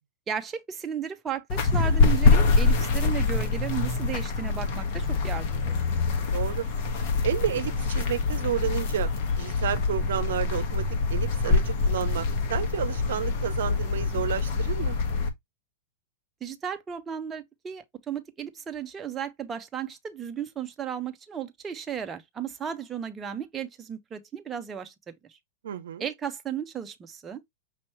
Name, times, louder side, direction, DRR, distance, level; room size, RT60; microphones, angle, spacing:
voice 1, 0.3-5.8 16.4-25.4 26.0-27.4, right 8 dB, 25° right, 0.7 m, -35 dB
sound 1, 1.5-15.3, left 4 dB, 55° left, 1.3 m, -25 dB
voice 2, 6.3-6.7 7.2-9.1 9.4-10.8 11.1-15.0 25.6-26.1, right 10 dB, 75° right, 0.7 m, -31 dB
5.5 x 2.9 x 3.1 m
hypercardioid pair, 110°, 0 cm